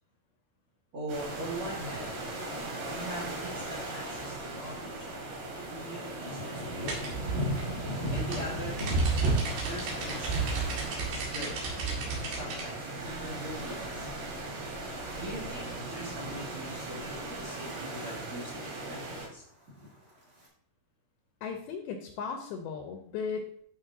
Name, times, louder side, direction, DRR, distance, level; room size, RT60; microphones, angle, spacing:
voice 1, 0.9-2.2 2.9-5.1 5.7-7.0 8.1-8.8 9.7-10.5 11.1-11.7 12.2-14.1 15.1-19.4, right 1 dB, 55° right, -4 dB, 1.5 m, -41 dB
sound 1, 1.1-19.3, right 2 dB, 90° right, 4.3 m, -39 dB
Thunder, 4.4-4.9 5.2-15.5 15.9-16.3 16.7-17.2 17.4-17.5 17.7-17.8 18.2-18.8 19.5-20.5, left 1 dB, 40° right, 1.3 m, -40 dB
sound 2, 6.9-12.7, right 3 dB, 75° right, 4.1 m, -31 dB
voice 2, 21.4-23.6, left 6 dB, 75° left, 4 dB, 2.4 m, -36 dB
12.0 x 5.7 x 2.7 m, 0.65 s
omnidirectional pair, 4.9 m